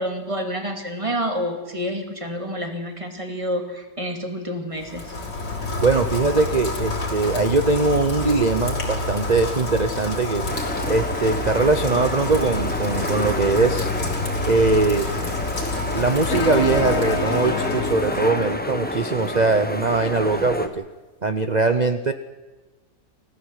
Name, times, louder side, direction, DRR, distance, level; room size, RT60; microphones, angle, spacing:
voice 1, 0.0-5.1, equal, 20° right, 4 dB, 2.5 m, -28 dB
Rain, 4.8-18.6, left 3 dB, 85° left, 4.1 m, -28 dB
voice 2, 5.8-10.5 10.9-13.9 14.5-15.1 15.9-20.8 21.2-22.1, right 3 dB, 45° right, 9 dB, 0.5 m, -21 dB
sound 1, 10.5-20.7, left 1 dB, 5° left, 1.2 m, -30 dB
sound 2, 16.3-19.3, left 3 dB, 60° left, 2.7 m, -28 dB
28.0 x 15.0 x 8.2 m, 1.2 s
omnidirectional pair, 1.9 m